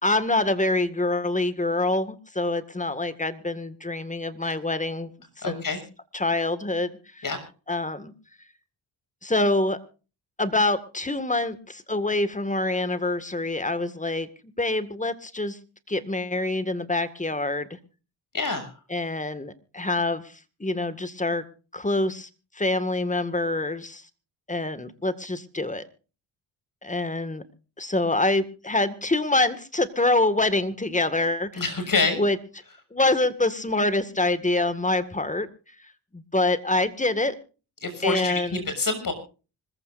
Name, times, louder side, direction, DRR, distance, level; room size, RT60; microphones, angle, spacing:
voice 1, 0.0-5.1 5.4-5.6 6.1-7.2 7.7-8.1 9.2-9.8 10.4-14.3 14.6-15.6 15.9-17.7 18.9-20.2 20.6-21.4 21.7-22.3 22.6-24.0 24.5-25.8 26.8-27.4 27.8-31.6 32.2-32.4 32.9-35.5 36.1-37.3 38.0-38.6, left 2 dB, 15° left, 12 dB, 2.0 m, -25 dB
voice 2, 5.4-5.8 7.2-7.4 18.3-18.7 31.6-32.2 37.8-39.1, left 3 dB, 40° left, 8 dB, 6.6 m, -26 dB
25.5 x 15.0 x 2.6 m, 0.35 s
supercardioid pair, 55°, 49 cm